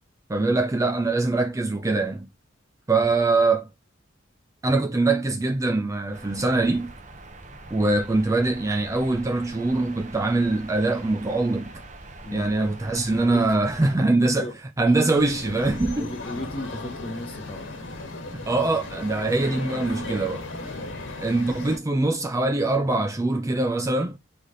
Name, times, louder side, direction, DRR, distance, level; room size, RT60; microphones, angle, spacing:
voice 1, 0.3-2.3 2.9-3.7 4.6-6.9 7.7-11.7 12.3-14.5 14.8-16.1 18.3-20.5 21.2-24.2, right 2 dB, 15° right, 0.4 m, -23 dB
sound 1, 6.1-14.0, right 2 dB, 40° right, 0.8 m, -43 dB
voice 2, 12.2-12.6 13.1-13.4 14.3-14.5 14.8-14.9 15.9-17.7 20.7-21.0, left 1 dB, 30° left, 1.0 m, -36 dB
sound 2, 15.2-21.8, left 2 dB, 85° left, 1.3 m, -36 dB
4.0 x 3.4 x 3.8 m
head